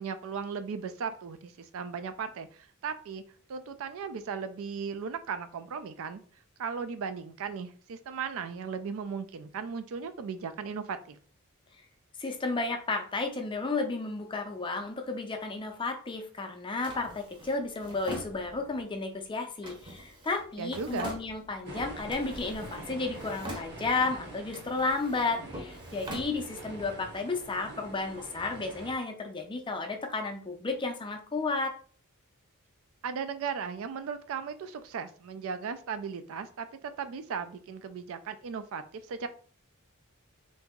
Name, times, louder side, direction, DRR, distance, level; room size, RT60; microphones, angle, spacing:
voice 1, 0.0-3.2 3.5-6.2 6.6-11.2 20.6-21.1 33.0-39.3, right 6 dB, 65° right, 10 dB, 0.4 m, -37 dB
voice 2, 12.2-31.8, left 3 dB, 20° left, 4 dB, 0.5 m, -33 dB
Drawer open or close, 16.8-18.9 19.6-21.7 22.1-22.9 23.1-24.1 24.5-26.9, equal, 20° right, 0.7 m, -44 dB
sound 1, 21.6-28.9, right 2 dB, 50° right, 0.9 m, -45 dB
2.9 x 2.7 x 3.5 m, 0.43 s
head